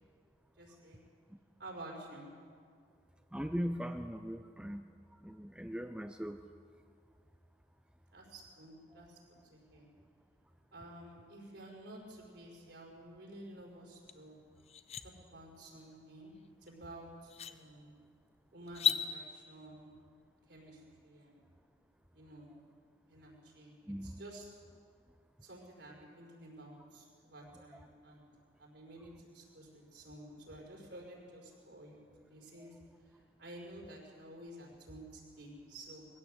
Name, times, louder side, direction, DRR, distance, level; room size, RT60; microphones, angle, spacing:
voice 1, 0.6-1.0 1.6-2.3 8.1-9.2 9.5-9.9 10.7-14.4 15.2-17.9 18.5-20.0 20.5-21.4 22.1-22.5 23.1-23.8 24.0-24.5 25.4-28.3 28.6-32.0 32.3-32.8 33.1-36.1, right 1 dB, 65° right, -1 dB, 5.4 m, -51 dB
voice 2, 3.3-4.8 5.2-6.4 23.9-24.2, equal, 5° right, 7 dB, 0.6 m, -39 dB
sound 1, 14.1-14.2 14.6-15.0 16.7-16.8 17.3-17.6 18.7-19.0, left 9 dB, 35° left, 0.8 m, -33 dB
21.5 x 16.0 x 8.1 m, 2.1 s
head